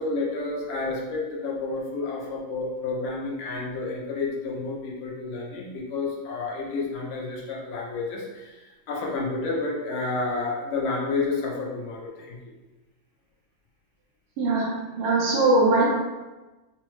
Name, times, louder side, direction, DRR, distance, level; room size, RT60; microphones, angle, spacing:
voice 1, 0.0-12.4, left 3 dB, 80° left, -2 dB, 1.6 m, -30 dB
voice 2, 14.4-15.9, right 2 dB, 85° right, -5 dB, 1.6 m, -21 dB
5.3 x 2.0 x 3.0 m, 1.2 s
omnidirectional pair, 2.2 m